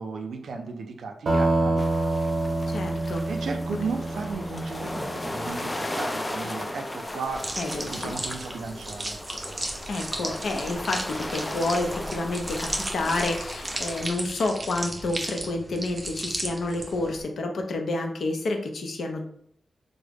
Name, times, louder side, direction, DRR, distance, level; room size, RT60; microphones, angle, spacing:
voice 1, 0.0-1.9 3.3-9.2, right 4 dB, 90° right, 4 dB, 0.4 m, -35 dB
sound 1, 1.3-5.5, right 2 dB, 65° right, 0.7 m, -27 dB
sound 2, 1.8-14.1, left 1 dB, 20° left, 0.3 m, -36 dB
voice 2, 2.7-3.2 7.6-8.2 9.9-19.2, left 2 dB, 80° left, 3 dB, 0.5 m, -29 dB
sound 3, 7.3-17.2, right 1 dB, 25° right, 0.6 m, -35 dB
3.5 x 2.0 x 3.4 m, 0.67 s
wide cardioid pair, 110°, 0 cm